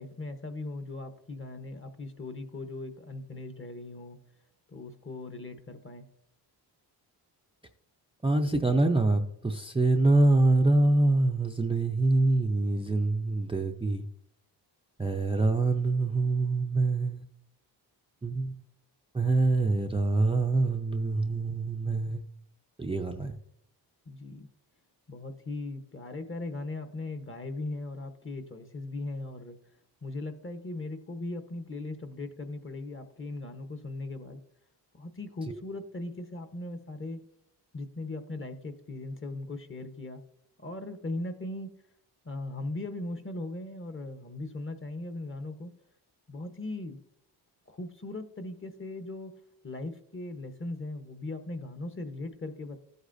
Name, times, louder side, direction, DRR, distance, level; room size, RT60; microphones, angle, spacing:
voice 1, 0.0-4.2 4.7-6.1 24.1-24.5 25.1-29.6 30.0-34.4 34.9-37.3 37.7-40.2 40.6-41.7 42.2-45.7 46.3-47.0 47.7-49.3 49.6-52.8, left 2 dB, 30° left, 7 dB, 1.0 m, -38 dB
voice 2, 8.2-14.0 15.0-17.2 18.2-18.5 19.1-22.2 22.8-23.4 35.5-35.6, right 2 dB, 15° right, 4 dB, 0.5 m, -25 dB
14.0 x 8.1 x 2.6 m, 0.72 s
wide cardioid pair, 115°, 43 cm